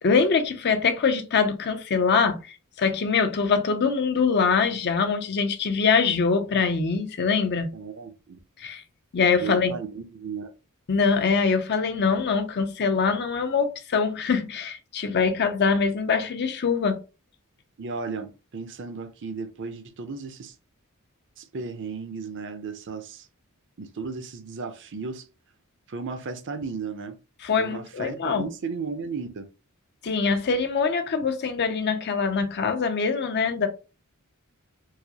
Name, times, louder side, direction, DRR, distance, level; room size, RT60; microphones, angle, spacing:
voice 1, 0.0-2.4 2.8-7.7 8.6-8.8 9.1-9.8 10.9-17.0 27.4-28.5 30.0-33.7, left 5 dB, 50° left, 0.5 m, -23 dB
voice 2, 7.7-8.4 9.4-10.5 17.8-20.5 21.4-23.3 23.8-25.2 25.9-27.2 27.6-29.5, right 4 dB, 55° right, 0.6 m, -35 dB
4.7 x 2.0 x 2.8 m
head